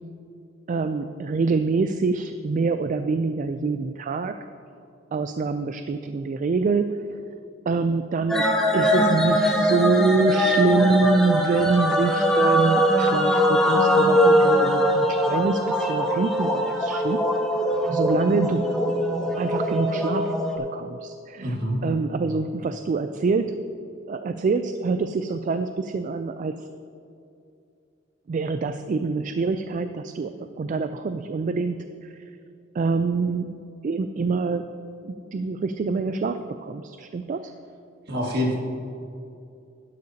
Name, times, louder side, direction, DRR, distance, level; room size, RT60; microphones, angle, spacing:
voice 1, 0.7-4.4 5.1-7.2 7.7-17.3 17.9-18.8 19.4-21.6 21.8-23.6 24.1-26.7 28.3-32.2 32.7-37.5, right 4 dB, 45° right, 9 dB, 0.3 m, -26 dB
sound 1, 8.3-20.6, equal, 5° left, 1.0 m, -21 dB
voice 2, 21.4-21.8 38.1-38.6, equal, 60° right, 0 dB, 1.8 m, -25 dB
12.0 x 10.5 x 2.8 m, 2.6 s
head